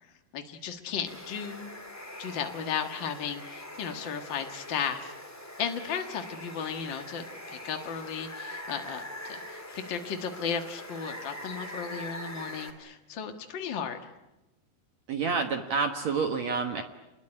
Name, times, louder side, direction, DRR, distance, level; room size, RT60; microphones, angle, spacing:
voice 1, 0.3-1.7 2.2-5.1 5.6-14.0, left 7 dB, 65° left, 5 dB, 1.1 m, -35 dB
Water, 1.1-12.7, left 1 dB, 5° left, 1.7 m, -43 dB
voice 2, 15.1-16.8, right 5 dB, 60° right, 6 dB, 1.9 m, -28 dB
28.0 x 21.0 x 10.0 m, 0.99 s
omnidirectional pair, 4.8 m